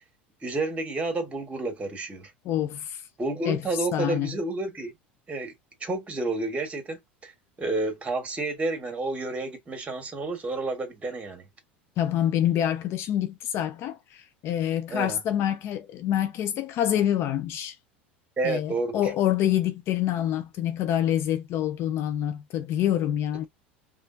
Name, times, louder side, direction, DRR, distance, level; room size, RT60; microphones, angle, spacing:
voice 1, 0.4-2.3 3.2-4.9 5.3-5.5 5.8-7.3 7.6-11.5 14.9-15.2 18.4-19.1, right 2 dB, 20° right, 1.7 m, -30 dB
voice 2, 2.4-3.0 3.4-3.6 3.9-4.3 12.0-17.7 18.4-23.4, left 11 dB, 45° left, 0.5 m, -26 dB
4.9 x 2.5 x 2.6 m
figure-of-eight pair, 75°, 6 cm